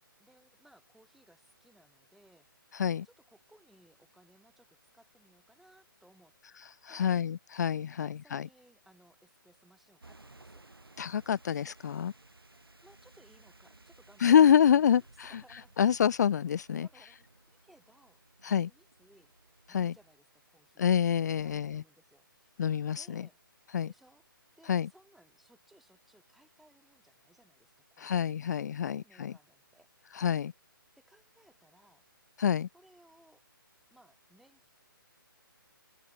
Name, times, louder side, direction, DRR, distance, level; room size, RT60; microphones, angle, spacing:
voice 1, 0.2-2.5 3.0-6.3 6.9-7.2 8.0-10.7 12.8-15.7 16.8-18.2 18.5-19.3 19.7-20.8 21.4-22.7 23.0-23.4 23.9-24.2 24.6-28.5 28.8-30.2 31.0-32.0 32.7-33.4 33.9-34.7, right 1 dB, ahead, 4.1 m, -63 dB
voice 2, 2.7-3.1 6.6-8.5 11.0-12.1 14.2-15.4 15.8-16.9 18.4-18.7 19.7-19.9 20.8-21.8 22.6-23.3 23.7-23.9 24.7-24.9 28.0-29.3 30.1-30.5 32.4-32.7, left 8 dB, 50° left, 0.4 m, -27 dB
sound 1, 10.0-20.2, right 2 dB, 90° right, 4.6 m, -59 dB
open air
figure-of-eight pair, 140°, 12 cm